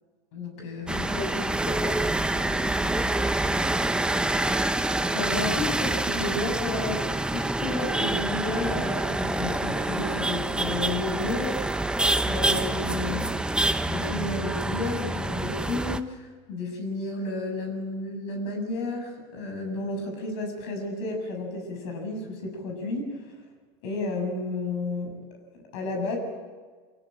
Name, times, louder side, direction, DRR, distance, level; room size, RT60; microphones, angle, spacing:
voice 1, 0.3-1.2 5.1-11.7 12.3-13.5 13.9-23.2 23.8-25.1 25.7-26.2, left 2 dB, 75° left, 3 dB, 7.7 m, -32 dB
sound 1, 0.9-16.0, right 2 dB, 5° right, 1.0 m, -27 dB
voice 2, 1.0-4.4, left 3 dB, 40° left, 3 dB, 4.3 m, -39 dB
25.0 x 17.0 x 8.9 m, 1.5 s
supercardioid pair, 100°, 15 cm